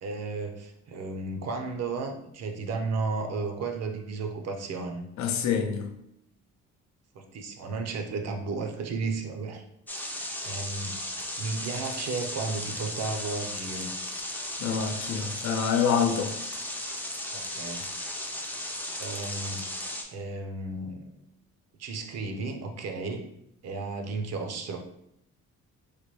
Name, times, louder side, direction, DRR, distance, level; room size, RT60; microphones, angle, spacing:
voice 1, 0.0-5.0 7.1-9.6 10.4-13.9 17.3-17.9 19.0-19.8 20.1-21.1 21.8-23.2 23.6-24.8, right 3 dB, 60° right, 0.6 m, -34 dB
voice 2, 5.2-5.9 14.6-16.3, left 7 dB, 65° left, 0.5 m, -26 dB
sound 1, 9.9-20.0, left 1 dB, 5° left, 0.4 m, -35 dB
3.2 x 2.1 x 3.0 m
cardioid pair, 90°, 30 cm